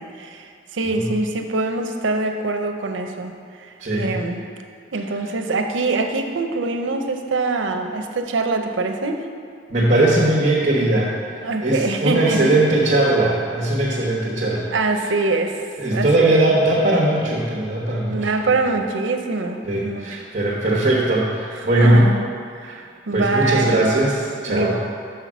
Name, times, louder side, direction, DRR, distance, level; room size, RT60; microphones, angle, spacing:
voice 1, 0.0-3.3 3.6-3.7 4.0-4.5 4.9-9.3 11.4-12.5 14.7-15.6 15.9-16.4 18.1-20.2 21.6-22.2 22.5-23.9 24.5-24.7, right 3 dB, 85° right, 5 dB, 0.7 m, -24 dB
voice 2, 3.8-4.2 9.7-11.1 11.6-14.7 15.8-18.2 19.6-22.0 22.6-22.8 23.1-24.7, right 1 dB, 40° right, -6 dB, 1.1 m, -19 dB
6.3 x 5.7 x 6.1 m, 2.3 s
head